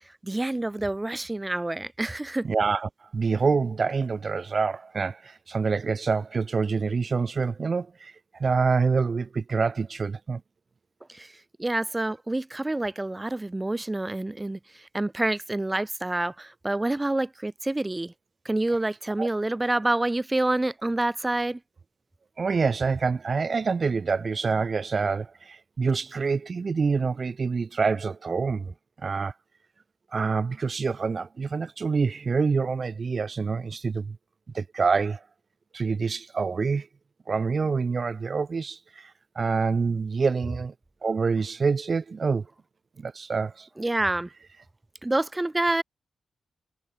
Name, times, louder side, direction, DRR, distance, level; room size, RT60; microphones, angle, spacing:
voice 1, 0.2-2.4 11.1-11.3 11.6-18.1 18.4-21.6 43.8-44.3 45.0-45.8, right 2 dB, 20° right, 1.5 m, -27 dB
voice 2, 2.4-10.4 19.2-19.3 22.4-28.7 29.0-29.3 30.1-34.2 34.5-35.2 35.7-36.9 37.3-40.7 41.0-42.4 43.0-43.7, right 5 dB, 50° right, 0.8 m, -26 dB
cardioid pair, 55°, 0 cm